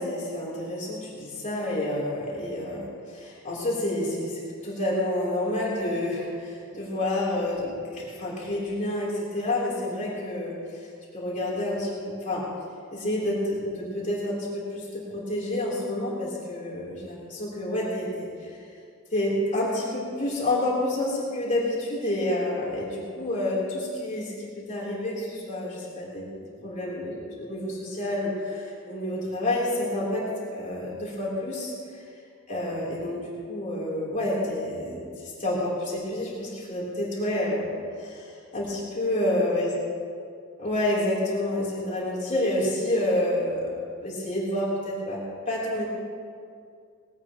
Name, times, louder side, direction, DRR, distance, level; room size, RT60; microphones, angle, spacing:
voice 1, 0.0-10.9 11.1-12.4 12.9-18.5 19.1-30.2 30.5-32.0 32.5-35.0 35.2-37.7 38.0-39.7 40.6-45.8, left 1 dB, 35° left, -6 dB, 3.5 m, -29 dB
20.0 x 17.0 x 3.0 m, 2.2 s
head